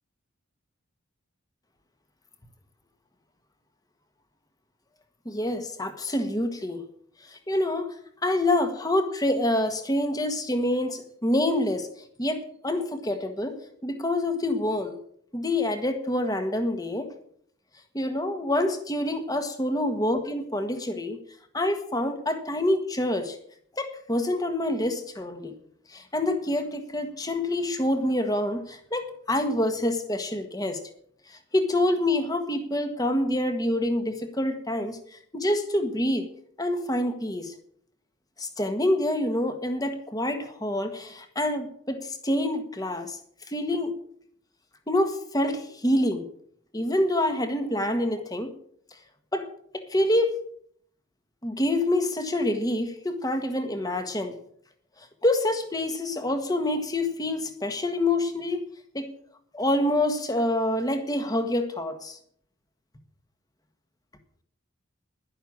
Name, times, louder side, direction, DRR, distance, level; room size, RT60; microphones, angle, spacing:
voice 1, 5.2-6.8 7.2-7.9 8.2-11.9 12.2-15.0 15.3-17.1 17.9-21.2 21.5-23.4 23.8-25.5 25.9-30.8 31.3-36.2 36.6-37.5 38.4-43.2 43.5-43.9 44.9-46.2 46.7-48.5 49.3-49.5 49.7-50.4 51.4-54.3 55.2-58.6 58.9-59.1 59.5-62.2, left 1 dB, 15° left, 7 dB, 1.5 m, -26 dB
11.5 x 11.5 x 7.4 m, 0.65 s
head